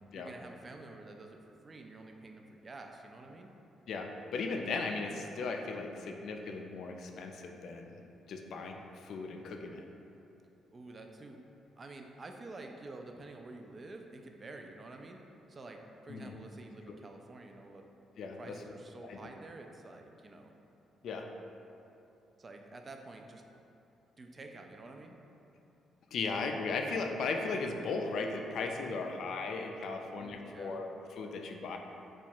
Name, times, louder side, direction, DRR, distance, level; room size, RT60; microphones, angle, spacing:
voice 1, 0.1-3.5 10.7-11.4 11.8-15.2 15.5-17.8 18.3-20.5 22.4-23.4 24.2-25.2 28.8-29.1 30.0-30.8, right 2 dB, 35° right, 3 dB, 0.3 m, -49 dB
voice 2, 3.9-8.0 8.3-9.9 16.1-16.4 18.2-18.6 19.0-19.3 21.0-21.3 26.1-31.8, left 4 dB, 70° left, 3 dB, 0.3 m, -37 dB
2.9 x 2.4 x 4.3 m, 2.9 s
cardioid pair, 90°, 0 cm